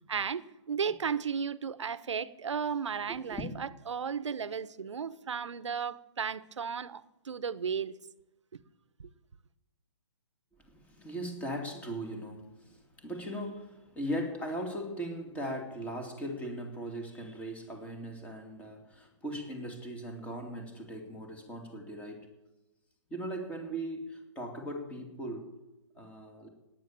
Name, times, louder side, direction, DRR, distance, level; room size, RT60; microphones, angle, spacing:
voice 1, 0.1-7.9, right 6 dB, 85° right, 1.0 m, -34 dB
voice 2, 3.1-3.5 10.5-22.3 23.1-25.5 25.9-26.5, equal, 10° left, 2.6 m, -39 dB
17.5 x 9.9 x 7.5 m
hypercardioid pair, 150°, 15 cm